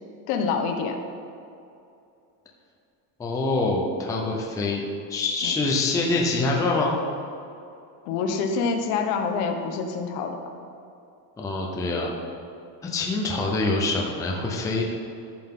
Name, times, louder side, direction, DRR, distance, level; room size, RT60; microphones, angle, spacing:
voice 1, 0.3-1.0 5.4-5.5 8.0-10.4, left 5 dB, 75° left, 4 dB, 1.2 m, -26 dB
voice 2, 3.2-6.9 11.4-12.1 12.8-14.8, left 3 dB, 5° left, -1 dB, 0.5 m, -25 dB
13.5 x 5.7 x 3.7 m, 2.6 s
cardioid pair, 170°, 47 cm